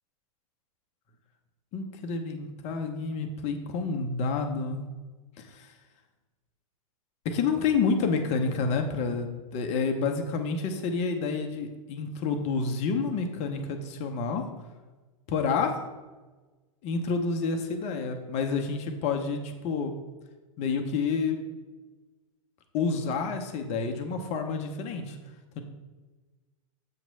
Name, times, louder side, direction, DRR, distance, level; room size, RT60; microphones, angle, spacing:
voice 1, 1.7-4.8 5.5-5.7 7.2-14.4 15.3-15.8 16.8-19.9 20.6-21.4 22.7-25.2 25.6-25.7, left 4 dB, 35° left, 5 dB, 0.9 m, -29 dB
7.6 x 3.0 x 5.6 m, 1.3 s
hypercardioid pair, 110°, 18 cm